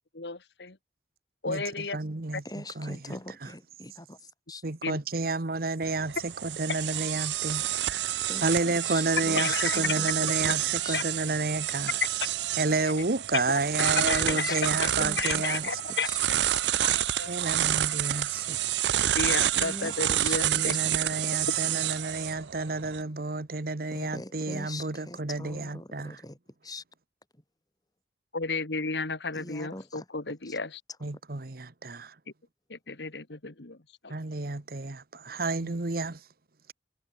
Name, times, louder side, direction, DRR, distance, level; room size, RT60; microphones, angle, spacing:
voice 1, 0.1-0.8 1.4-2.0 4.8-5.0 9.4-9.8 10.2-10.3 10.9-11.0 13.8-14.9 15.2-16.1 16.5-17.3 19.2-20.7 28.3-30.8 32.7-33.8 34.0-34.1, left 4 dB, 75° left, 1.9 m, -33 dB
voice 2, 1.9-2.4 2.8-3.0 4.6-7.6 8.4-11.9 12.6-15.6 17.3-18.6 20.4-26.1 31.0-32.1 34.1-36.2, right 3 dB, 55° right, 1.2 m, -30 dB
voice 3, 2.4-4.6 8.2-10.5 10.8-11.0 14.0-16.2 19.5-21.4 23.9-26.8 27.3-27.4 29.3-30.1 30.4-30.6, left 2 dB, 20° left, 4.2 m, -43 dB
sound 1, 5.8-23.0, right 12 dB, 80° right, 0.6 m, -29 dB
head